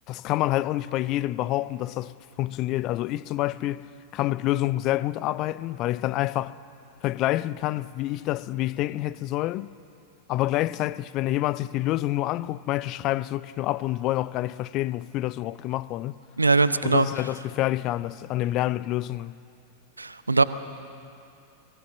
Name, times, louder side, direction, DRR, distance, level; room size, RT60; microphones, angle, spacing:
voice 1, 0.1-3.9 4.1-6.6 7.0-9.7 10.3-16.1 16.8-19.3, left 15 dB, 40° left, 0.5 m, -27 dB
voice 2, 16.4-17.1 20.0-20.4, right 3 dB, 80° right, 0.6 m, -21 dB
23.0 x 17.0 x 7.2 m
figure-of-eight pair, 90°, 0 cm